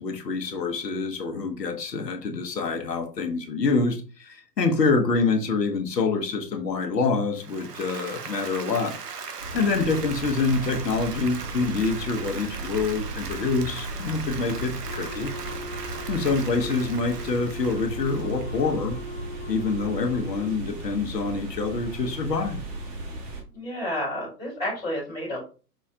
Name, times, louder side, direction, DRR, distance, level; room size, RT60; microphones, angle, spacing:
voice 1, 0.0-8.9 9.5-15.3 16.1-19.0 19.5-22.6, left 4 dB, 75° left, 0.9 m, -26 dB
Applause, 7.3-19.0, right 6 dB, 70° right, 0.8 m, -39 dB
large waterfall park, 9.4-23.4, right 2 dB, 25° right, 0.8 m, -36 dB
voice 2, 9.5-9.8 23.5-25.4, left 1 dB, 5° left, 0.4 m, -31 dB
Wind instrument woodwind instrument, 14.8-20.6, left 1 dB, 35° left, 0.8 m, -40 dB
5.4 x 2.1 x 2.6 m
figure-of-eight pair, 115°, 49 cm